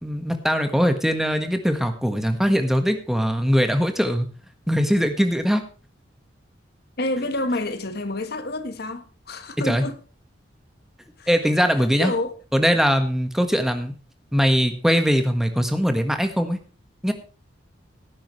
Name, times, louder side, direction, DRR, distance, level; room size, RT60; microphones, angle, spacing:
voice 1, 0.0-4.3 4.7-5.6 9.6-9.8 11.3-12.1 12.5-13.9 14.3-16.6 17.0-17.1, equal, ahead, 1.5 m, -21 dB
voice 2, 7.0-10.0 11.2-11.3 12.0-12.4, left 2 dB, 55° left, 1.3 m, -28 dB
17.5 x 10.0 x 3.2 m
head